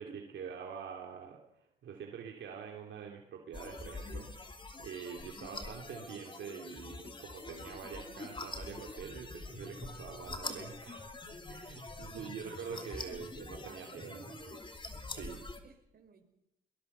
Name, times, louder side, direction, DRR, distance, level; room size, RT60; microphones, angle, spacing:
voice 1, 0.0-11.0 11.5-14.3 15.1-15.5, right 7 dB, 70° right, 1 dB, 2.8 m, -45 dB
sound 1, 3.5-15.6, left 2 dB, 25° left, 2.9 m, -45 dB
voice 2, 12.1-13.0 13.3-14.6 15.6-16.2, right 5 dB, 50° right, 6 dB, 4.9 m, -54 dB
22.0 x 20.5 x 6.8 m, 0.83 s
cardioid pair, 90°, 20 cm